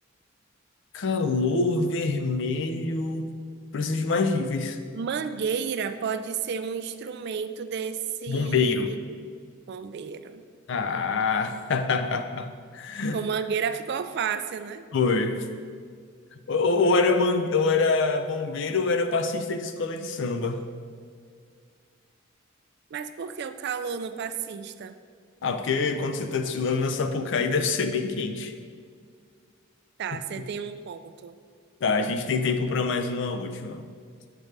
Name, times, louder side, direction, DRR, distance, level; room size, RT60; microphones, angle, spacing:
voice 1, 0.9-3.3 3.7-4.8 8.3-8.9 10.7-13.2 14.9-15.4 16.5-20.6 25.4-28.5 31.8-33.9, left 4 dB, 65° left, 8 dB, 0.5 m, -25 dB
voice 2, 4.9-9.0 9.7-10.4 13.1-14.8 22.9-25.0 30.0-31.3, right 6 dB, 55° right, 11 dB, 0.3 m, -31 dB
6.5 x 6.1 x 3.2 m, 2.1 s
head